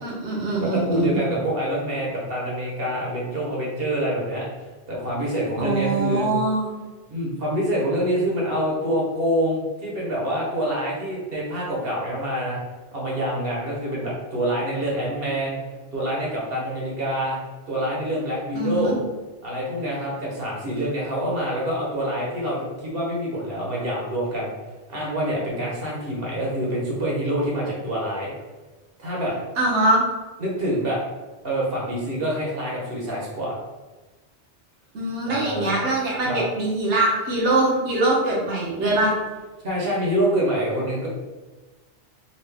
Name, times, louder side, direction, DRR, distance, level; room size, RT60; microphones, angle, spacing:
voice 1, 0.0-1.2 5.6-6.8 18.5-19.0 29.6-30.0 34.9-39.1, right 2 dB, 80° right, -4 dB, 1.3 m, -23 dB
voice 2, 0.6-4.5 4.9-6.3 7.1-12.6 12.9-15.6 15.9-17.4 17.7-19.0 19.4-24.5 24.9-28.3 29.0-29.3 30.4-31.0 31.4-33.6 35.3-35.7 36.2-36.4 39.6-41.1, equal, 60° right, -4 dB, 1.1 m, -26 dB
4.0 x 2.5 x 3.4 m, 1.2 s
omnidirectional pair, 1.2 m